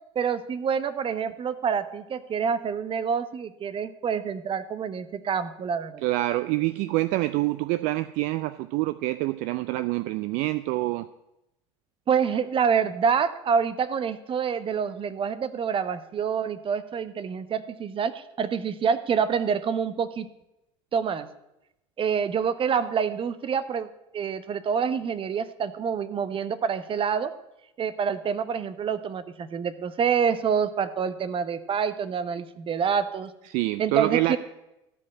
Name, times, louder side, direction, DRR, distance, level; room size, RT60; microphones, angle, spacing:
voice 1, 0.1-6.1 12.1-20.3 20.9-21.3 22.0-23.9 24.1-27.3 27.8-33.3 33.8-34.4, right 7 dB, 35° right, 12 dB, 1.0 m, -27 dB
voice 2, 6.0-11.1 33.5-34.4, right 18 dB, 60° right, 13 dB, 0.5 m, -26 dB
13.0 x 5.3 x 8.7 m, 0.90 s
hypercardioid pair, 70°, 15 cm